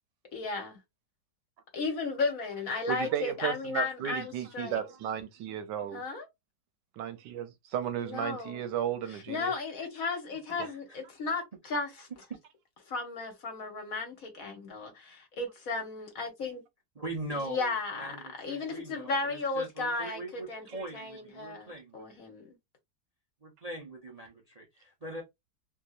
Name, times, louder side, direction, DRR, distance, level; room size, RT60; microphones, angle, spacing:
voice 1, 0.3-0.8 1.7-4.9 5.9-6.3 8.0-8.6 9.1-12.1 12.9-16.6 17.3-18.1 18.4-20.7 20.9-22.6, left 3 dB, 55° left, 1.3 m, -35 dB
voice 2, 2.9-6.0 7.0-9.5 10.6-10.7, right 9 dB, 85° right, 1.3 m, -34 dB
voice 3, 10.6-11.0 16.9-22.2 23.4-25.2, right 1 dB, 35° right, 0.6 m, -41 dB
3.2 x 2.7 x 2.4 m
omnidirectional pair, 1.9 m